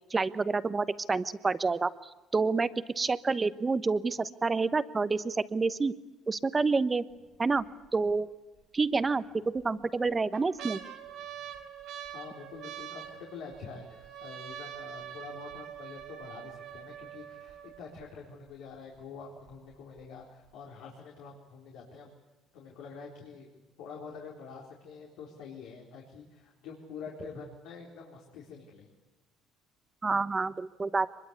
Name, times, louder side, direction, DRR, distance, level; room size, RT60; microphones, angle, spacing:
voice 1, 0.1-1.9 2.3-2.7 3.0-5.9 6.3-7.0 7.4-7.6 7.9-8.3 8.7-10.8 30.0-31.1, right 4 dB, 25° right, 13 dB, 1.0 m, -28 dB
sound 1, 7.1-7.6 8.1-8.2 9.1-9.6 10.1-18.0 18.7-18.8 19.0-19.5 20.0-20.1, right 10 dB, 75° right, 3.8 m, -44 dB
voice 2, 12.1-22.1 22.5-23.5 23.8-28.9, left 5 dB, 80° left, -2 dB, 4.1 m, -46 dB
24.0 x 21.5 x 8.4 m, 1.1 s
cardioid pair, 100°, 0 cm